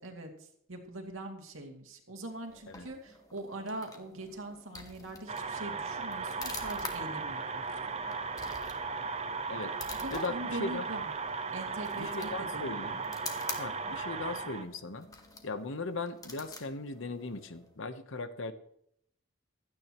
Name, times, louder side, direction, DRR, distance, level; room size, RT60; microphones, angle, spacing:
voice 1, 0.0-7.6 10.0-11.1 11.5-13.0, right 1 dB, 70° right, 3 dB, 2.5 m, -42 dB
sound 1, 2.2-17.8, left 3 dB, 15° left, 1.5 m, -48 dB
sound 2, 5.3-14.6, right 4 dB, 30° right, 0.8 m, -36 dB
voice 2, 10.1-10.8 11.9-13.0 13.6-15.1 15.4-18.5, left 3 dB, 65° left, 11 dB, 1.0 m, -38 dB
16.5 x 12.0 x 3.0 m, 0.70 s
head